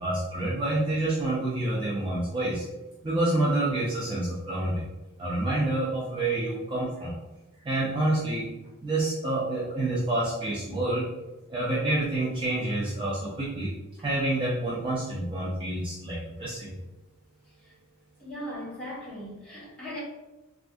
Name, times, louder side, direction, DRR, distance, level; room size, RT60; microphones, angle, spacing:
voice 1, 0.0-2.6 3.0-4.9 5.2-7.1 7.6-8.5 8.8-11.1 11.5-13.7 14.0-16.8, right 2 dB, 25° right, -6 dB, 0.5 m, -28 dB
voice 2, 18.2-20.0, equal, 5° left, -9 dB, 1.3 m, -38 dB
3.4 x 2.4 x 2.5 m, 1.1 s
head